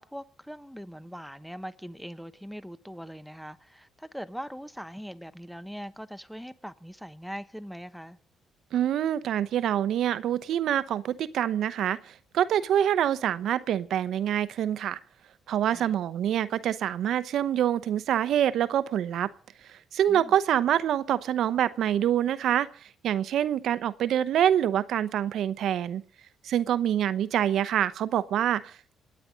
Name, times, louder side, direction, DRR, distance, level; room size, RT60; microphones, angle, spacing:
voice 1, 0.0-8.2 15.7-15.9 20.1-20.3, equal, ahead, 1.1 m, -41 dB
voice 2, 8.7-15.0 15.5-19.3 19.7-22.7 23.0-26.0 26.4-28.9, right 10 dB, 75° right, 0.9 m, -26 dB
27.5 x 9.8 x 5.1 m
cardioid pair, 95°, 0 cm